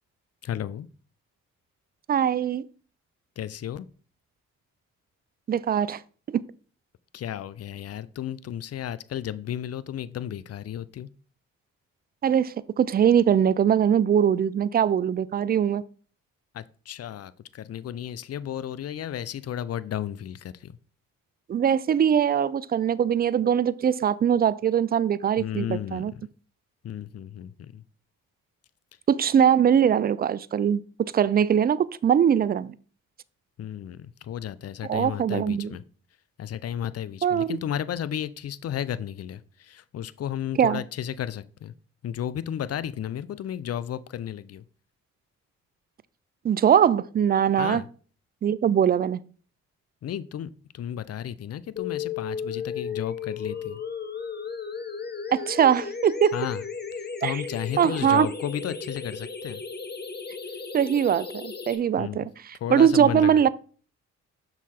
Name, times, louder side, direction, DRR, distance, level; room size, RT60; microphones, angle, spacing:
voice 1, 0.4-0.9 3.4-3.9 7.1-11.1 16.5-20.7 25.4-26.0 26.8-27.8 33.6-35.8 36.4-41.7 42.0-44.6 47.6-47.9 50.0-53.8 56.3-56.6 57.2-59.6 60.5-60.6 62.0-62.3 62.6-63.4, left 10 dB, 45° left, 0.5 m, -33 dB
voice 2, 2.1-2.6 5.5-6.0 6.3-6.4 12.2-15.8 21.5-26.1 29.1-32.7 34.8-35.8 37.2-37.6 40.6-40.8 46.4-47.8 48.4-49.2 55.3-56.3 57.2-57.4 57.8-58.3 60.7-63.5, right 8 dB, 30° right, 0.4 m, -22 dB
sound 1, 51.8-61.8, left 5 dB, 30° left, 1.1 m, -35 dB
5.9 x 3.9 x 4.2 m
supercardioid pair, 50°, 35 cm